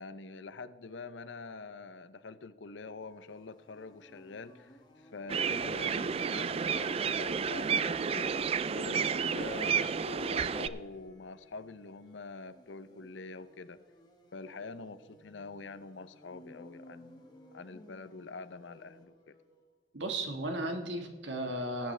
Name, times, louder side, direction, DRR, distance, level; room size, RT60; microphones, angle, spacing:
voice 1, 0.0-8.3 8.7-13.8 14.3-17.2 17.5-19.3, left 4 dB, 80° left, 13 dB, 0.7 m, -45 dB
sound 1, 3.0-19.6, left 1 dB, 25° left, 1.4 m, -58 dB
sound 2, 5.3-10.7, right 6 dB, 30° right, 0.3 m, -31 dB
voice 2, 19.9-21.9, right 1 dB, 80° right, 4 dB, 1.7 m, -35 dB
19.5 x 8.7 x 3.3 m, 1.5 s
head